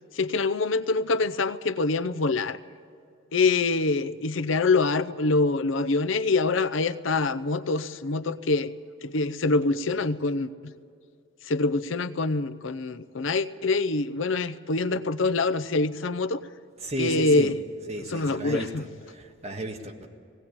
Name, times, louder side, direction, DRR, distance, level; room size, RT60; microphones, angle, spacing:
voice 1, 0.1-2.6 3.3-8.7 9.0-10.5 11.4-16.4 17.0-17.6 18.1-18.8, left 3 dB, 75° left, 13 dB, 0.7 m, -25 dB
voice 2, 16.8-17.5 17.9-20.1, right 1 dB, 30° right, 2 dB, 1.7 m, -33 dB
19.0 x 17.0 x 8.6 m, 2.4 s
head